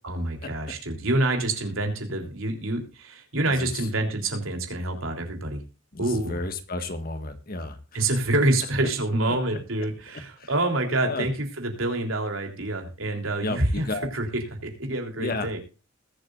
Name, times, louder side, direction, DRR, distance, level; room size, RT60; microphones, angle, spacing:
voice 1, 0.0-5.6 6.0-6.4 7.9-13.9 14.1-14.3 14.6-15.6, right 2 dB, 80° right, 3 dB, 3.5 m, -27 dB
voice 2, 5.9-8.0 10.4-10.5 11.1-11.3 13.4-14.1 15.2-15.5, left 2 dB, 45° left, 8 dB, 1.7 m, -32 dB
20.5 x 7.9 x 2.5 m, 0.33 s
head